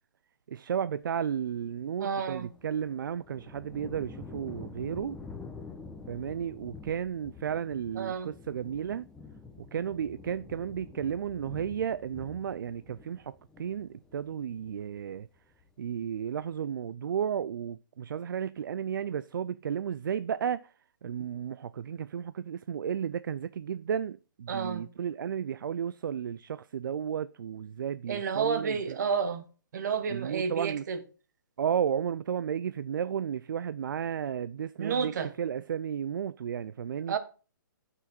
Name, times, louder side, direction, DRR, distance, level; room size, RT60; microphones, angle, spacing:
voice 1, 0.5-5.2 6.1-9.0 9.6-15.3 15.8-20.7 21.0-29.0 30.1-30.8 31.6-37.2, right 8 dB, 75° right, 0.4 m, -33 dB
voice 2, 2.0-2.5 8.0-8.3 24.5-24.8 28.1-29.4 29.7-31.0 34.8-35.3 37.1-37.2, right 6 dB, 60° right, 1.3 m, -30 dB
sound 1, 2.1-14.9 15.2-15.9, left 4 dB, 5° left, 1.0 m, -48 dB
9.2 x 6.1 x 4.3 m
hypercardioid pair, 150°, 11 cm